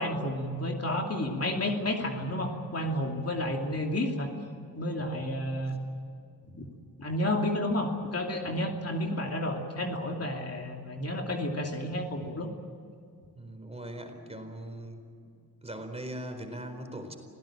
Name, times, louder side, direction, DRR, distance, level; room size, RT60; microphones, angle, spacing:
voice 1, 0.0-4.3 4.8-5.8 6.5-6.7 7.0-12.5, left 1 dB, 40° left, 2 dB, 2.9 m, -31 dB
voice 2, 13.3-15.0 15.6-17.2, right 1 dB, 15° right, 5 dB, 4.3 m, -40 dB
26.0 x 17.5 x 8.9 m, 2.4 s
cardioid pair, 90°, 38 cm